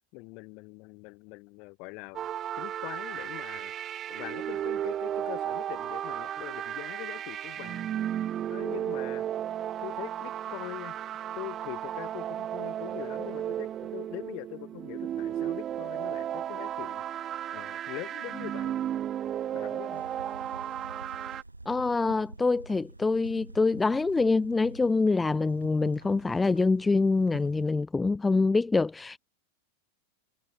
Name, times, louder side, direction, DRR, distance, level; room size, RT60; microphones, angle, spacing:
voice 1, 0.1-2.2 2.6-3.7 4.1-7.9 8.5-9.3 9.8-11.0 11.3-17.0 17.5-18.8 19.5-20.0, left 29 dB, 45° left, 4.5 m, -42 dB
sound 1, 2.1-21.4, right 10 dB, 30° right, 0.8 m, -34 dB
sound 2, 19.9-27.7, right 2 dB, 85° right, 5.8 m, -47 dB
voice 2, 21.6-29.2, left 3 dB, 10° left, 1.0 m, -25 dB
figure-of-eight pair, 90°, 0 cm